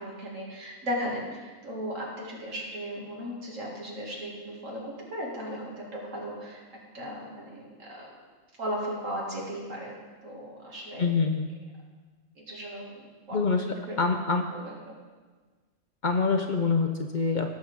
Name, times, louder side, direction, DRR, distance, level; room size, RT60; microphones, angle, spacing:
voice 1, 0.0-6.6 6.9-8.1 8.6-10.0 10.2-11.1 12.4-12.9 13.3-13.4 13.9-14.0 14.5-15.0, equal, 90° right, -3 dB, 2.6 m, -36 dB
voice 2, 11.0-11.5 13.3-13.6 14.0-14.4 16.0-17.6, left 4 dB, 50° left, 5 dB, 0.6 m, -25 dB
16.5 x 6.6 x 3.6 m, 1.4 s
omnidirectional pair, 1.3 m